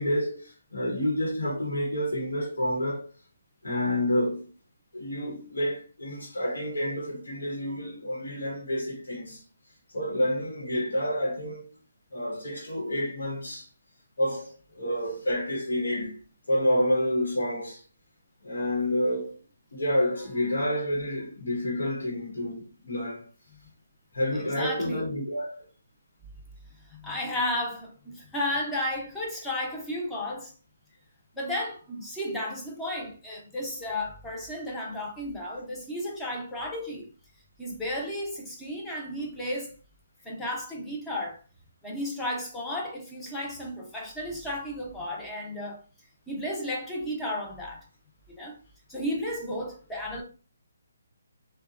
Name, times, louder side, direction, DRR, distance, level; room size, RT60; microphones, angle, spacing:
voice 1, 0.0-3.1 3.6-4.5 4.9-9.4 9.9-11.7 12.1-13.7 14.2-16.2 16.5-17.8 18.4-19.4 19.7-23.2 24.1-25.7, left 1 dB, 90° left, 1.0 m, -29 dB
voice 2, 24.3-25.1 26.8-30.5 31.3-37.1 37.6-39.8 40.2-41.4 41.8-45.8 46.3-47.8 48.3-48.6 48.9-50.2, left 1 dB, 5° left, 0.6 m, -33 dB
2.8 x 2.1 x 2.4 m
hypercardioid pair, 160°, 0 cm